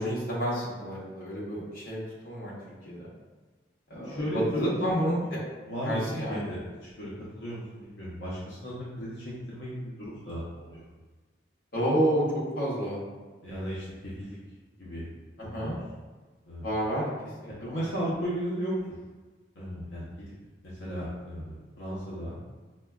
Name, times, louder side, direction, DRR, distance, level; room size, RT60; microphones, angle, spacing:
voice 1, 0.0-2.5 2.8-3.1 3.9-5.4 5.8-6.5 11.7-12.2 12.5-13.0 15.5-15.7 16.6-17.1 17.6-17.8, equal, 50° left, -7 dB, 1.0 m, -29 dB
voice 2, 3.9-4.9 5.2-5.3 5.7-10.8 13.4-14.4 14.8-15.0 15.4-15.8 16.5-16.7 17.6-18.7 19.6-20.3 20.8-22.4, equal, 70° left, -8 dB, 0.7 m, -35 dB
4.7 x 2.2 x 2.3 m, 1.3 s
head